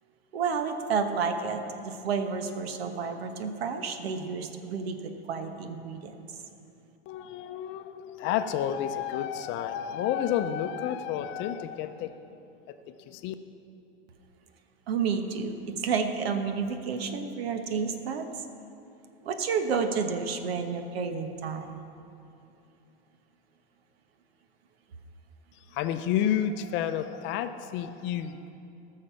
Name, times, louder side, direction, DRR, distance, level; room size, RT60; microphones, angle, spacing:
voice 1, 0.3-6.1 14.9-18.3 19.2-21.7, right 5 dB, 75° right, 7 dB, 1.3 m, -30 dB
voice 2, 7.1-12.2 12.7-12.8 13.1-13.3 25.7-28.5, left 10 dB, 40° left, 9 dB, 0.6 m, -30 dB
19.0 x 6.5 x 5.7 m, 2.7 s
supercardioid pair, 125°, 31 cm